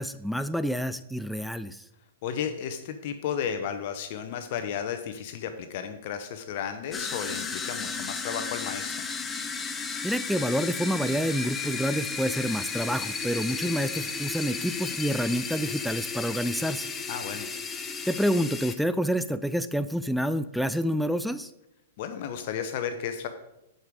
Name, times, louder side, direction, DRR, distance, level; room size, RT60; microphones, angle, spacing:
voice 1, 0.0-1.8 10.0-16.9 18.1-21.5, equal, ahead, 12 dB, 0.3 m, -28 dB
voice 2, 2.2-9.0 13.6-13.7 17.1-17.5 22.0-23.3, left 8 dB, 55° left, 8 dB, 0.9 m, -33 dB
sound 1, 6.9-18.8, left 5 dB, 15° left, 0.7 m, -34 dB
10.5 x 5.2 x 4.8 m, 0.88 s
hypercardioid pair, 130°, 0 cm